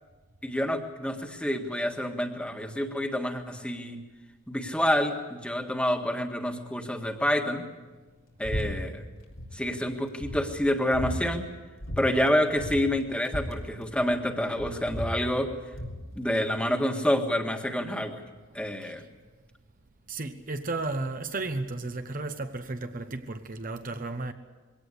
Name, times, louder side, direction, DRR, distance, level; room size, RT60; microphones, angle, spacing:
voice 1, 0.4-4.0 4.5-7.6 8.4-9.0 9.5-11.5 12.0-15.5 16.1-18.2 18.5-19.1, equal, 5° left, 1.7 m, -28 dB
sound 1, 8.4-8.7 8.9-9.5 9.9-10.0 10.2-11.2 11.8-12.0 12.3-12.4 12.6-14.2 14.6-16.0, equal, 85° left, 3.6 m, -35 dB
voice 2, 20.1-24.3, right 2 dB, 45° right, 1.0 m, -34 dB
22.5 x 17.5 x 8.3 m
head